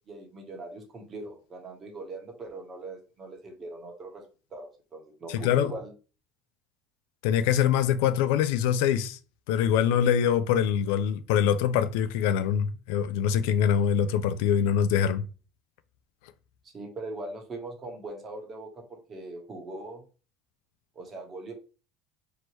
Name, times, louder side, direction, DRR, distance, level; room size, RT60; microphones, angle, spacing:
voice 1, 0.1-4.2 4.5-5.9 16.6-20.0 20.9-21.5, right 2 dB, 25° right, 1.2 m, -41 dB
voice 2, 5.3-5.7 7.2-9.2 9.5-15.2, left 9 dB, 85° left, 0.4 m, -24 dB
4.4 x 2.9 x 3.1 m
cardioid pair, 145°, 0 cm